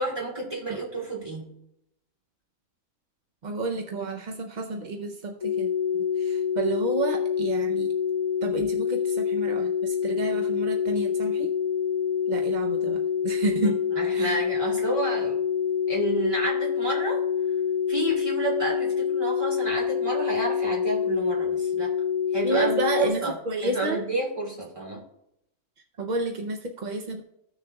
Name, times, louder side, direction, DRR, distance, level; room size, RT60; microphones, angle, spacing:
voice 1, 0.0-1.5 13.6-15.4 15.9-17.2 17.9-21.9 22.3-23.3 23.6-25.0, right 2 dB, 20° right, -5 dB, 2.7 m, -30 dB
voice 2, 3.4-5.7 6.2-7.9 8.4-11.5 12.3-13.8 14.1-14.4 22.4-24.0 26.0-27.2, right 2 dB, 50° right, 3 dB, 0.6 m, -30 dB
sound 1, 5.4-23.1, left 7 dB, 65° left, 1.3 m, -26 dB
15.5 x 6.5 x 2.3 m, 0.81 s
omnidirectional pair, 1.6 m